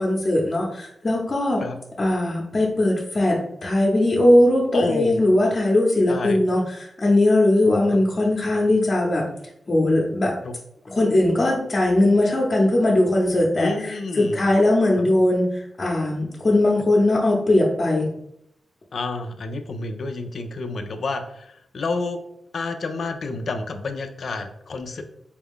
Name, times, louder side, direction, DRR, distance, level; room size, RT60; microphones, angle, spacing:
voice 1, 0.0-1.6 2.0-9.2 9.7-10.3 10.9-18.1, left 1 dB, 35° left, -5 dB, 0.8 m, -20 dB
voice 2, 4.7-5.3 6.1-6.5 7.6-8.0 10.4-10.5 13.6-14.4 15.0-15.1 18.9-22.2 22.5-25.0, left 3 dB, 65° left, 6 dB, 0.4 m, -29 dB
4.2 x 2.3 x 3.5 m, 0.76 s
cardioid pair, 80°, 0 cm